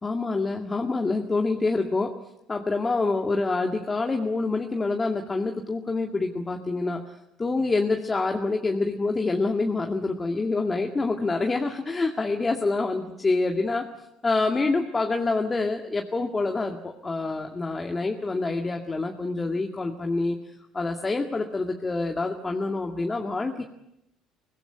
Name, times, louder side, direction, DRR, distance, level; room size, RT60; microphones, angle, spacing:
voice 1, 0.0-2.1 2.5-7.0 7.4-13.9 14.2-20.4 20.7-23.6, left 3 dB, 25° left, 3 dB, 2.1 m, -26 dB
25.0 x 17.0 x 9.2 m, 0.84 s
hypercardioid pair, 60°, 0 cm